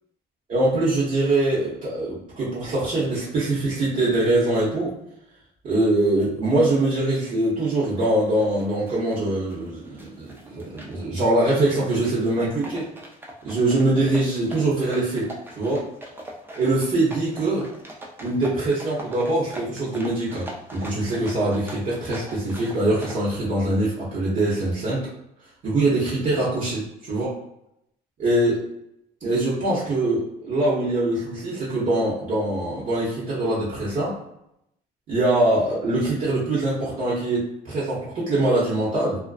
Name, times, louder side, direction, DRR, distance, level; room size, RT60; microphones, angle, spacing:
voice 1, 0.5-4.9 5.6-12.8 13.4-15.3 15.6-15.8 16.5-17.6 18.2-25.1 25.6-27.3 28.2-28.6 29.2-34.1 35.1-39.2, right 2 dB, 50° right, -9 dB, 0.9 m, -23 dB
sound 1, 7.7-23.2, right 1 dB, 15° right, 0.4 m, -42 dB
2.4 x 2.1 x 2.3 m, 0.79 s
cardioid pair, 110°, 17 cm